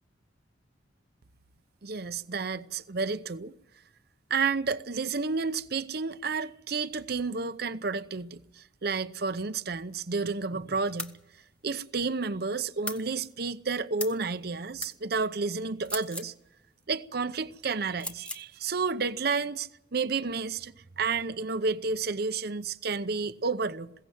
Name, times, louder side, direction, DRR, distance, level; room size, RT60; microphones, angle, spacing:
voice 1, 1.8-3.5 4.3-11.2 11.6-16.3 16.9-23.9, right 4 dB, 55° right, 0.7 m, -31 dB
sound 1, 11.0-11.2 12.8-13.0 14.0-14.2 14.8-14.9 15.8-16.3 18.0-18.4, left 1 dB, 5° left, 1.1 m, -36 dB
21.0 x 17.0 x 7.7 m
head